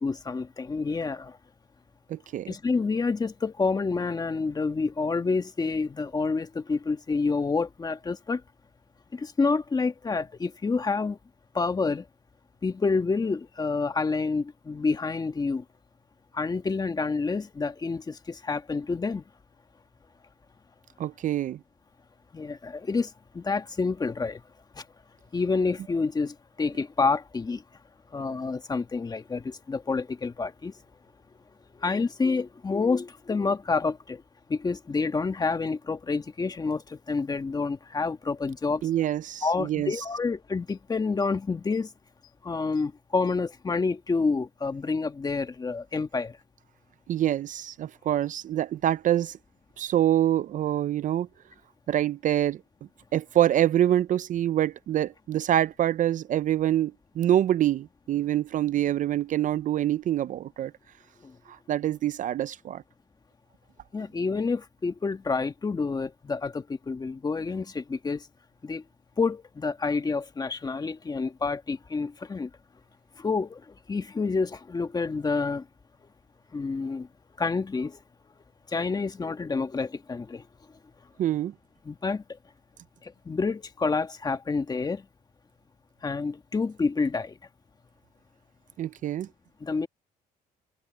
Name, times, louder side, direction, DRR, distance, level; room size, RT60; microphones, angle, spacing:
voice 1, 0.0-1.4 2.5-8.4 9.1-11.2 11.5-12.1 12.6-15.6 16.3-19.2 22.3-24.4 24.8-24.9 25.3-27.6 28.1-30.7 31.8-34.2 34.5-38.8 39.4-41.9 42.4-46.4 61.2-61.4 63.9-68.3 68.6-68.8 69.2-72.5 73.2-75.7 76.5-77.1 77.4-78.0 78.7-80.4 81.8-82.2 83.0-85.1 86.0-87.4 89.6-89.9, left 4 dB, 25° left, 1.7 m, -28 dB
voice 2, 2.1-2.5 21.0-21.6 38.8-39.9 47.1-49.4 49.8-51.3 51.9-52.6 53.1-60.7 61.7-62.8 81.2-81.5 88.8-89.3, right 12 dB, 50° right, 0.5 m, -25 dB
cardioid pair, 110°, 17 cm